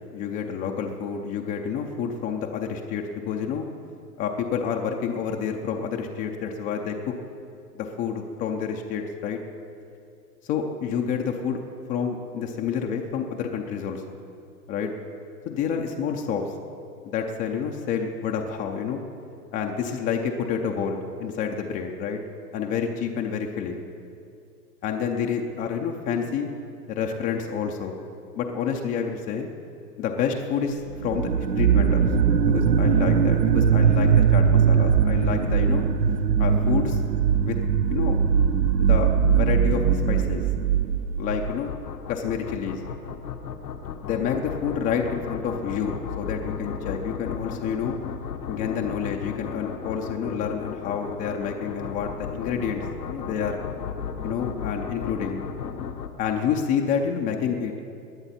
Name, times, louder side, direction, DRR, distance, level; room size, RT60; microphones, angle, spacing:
voice 1, 0.0-3.7 4.2-7.1 7.7-9.4 10.4-11.6 11.9-14.0 14.7-14.9 15.5-16.5 17.0-19.0 19.5-22.2 22.5-23.8 24.8-26.5 26.9-28.0 28.3-29.5 30.0-31.3 31.6-32.1 32.4-35.9 36.4-37.0 37.4-37.6 37.9-38.2 38.8-40.4 41.2-41.7 42.1-42.8 44.0-47.9 48.5-53.6 54.2-55.4 56.2-58.0, left 7 dB, 15° left, 2 dB, 0.5 m, -28 dB
sound 1, 30.9-41.6, right 7 dB, 80° right, 0.8 m, -20 dB
sound 2, 41.3-56.1, left 7 dB, 80° left, 1.2 m, -35 dB
20.0 x 10.5 x 4.2 m, 2.5 s
hypercardioid pair, 115°, 50 cm